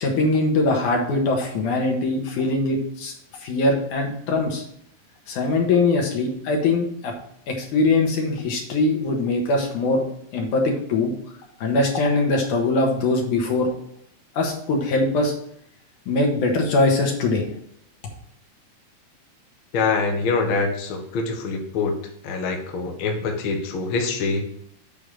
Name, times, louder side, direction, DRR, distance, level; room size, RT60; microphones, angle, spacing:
voice 1, 0.0-3.1 3.4-4.6 5.3-7.1 7.5-10.0 10.3-11.1 11.6-13.7 14.3-15.3 16.1-17.4, left 2 dB, 85° left, 1 dB, 3.0 m, -22 dB
voice 2, 19.7-21.9 22.2-24.4, left 4 dB, 60° left, 3 dB, 1.5 m, -24 dB
8.3 x 3.5 x 6.4 m, 0.68 s
omnidirectional pair, 3.5 m